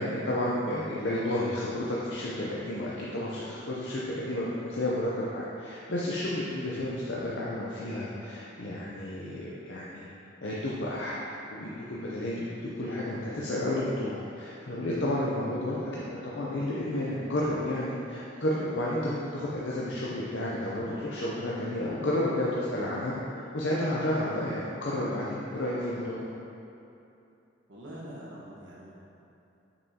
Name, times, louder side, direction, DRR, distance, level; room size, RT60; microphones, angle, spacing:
voice 1, 0.0-10.1 10.4-11.2 11.5-12.5 12.8-23.1 23.5-26.2, left 1 dB, 75° left, -6 dB, 0.7 m, -31 dB
voice 2, 15.6-15.9 27.7-28.9, right 1 dB, 90° right, -6 dB, 1.5 m, -45 dB
6.8 x 5.5 x 2.9 m, 2.8 s
head